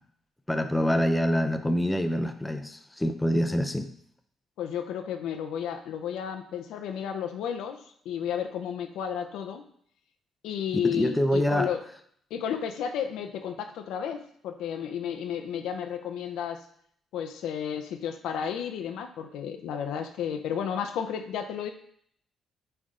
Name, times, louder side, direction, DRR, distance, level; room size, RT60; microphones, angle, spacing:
voice 1, 0.5-3.9 10.8-11.7, equal, 10° left, 7 dB, 0.6 m, -25 dB
voice 2, 4.6-7.8 8.0-9.6 10.4-11.8 12.3-16.6 17.1-21.7, left 8 dB, 85° left, 7 dB, 0.7 m, -32 dB
9.6 x 3.4 x 3.7 m, 0.64 s
cardioid pair, 90°, 0 cm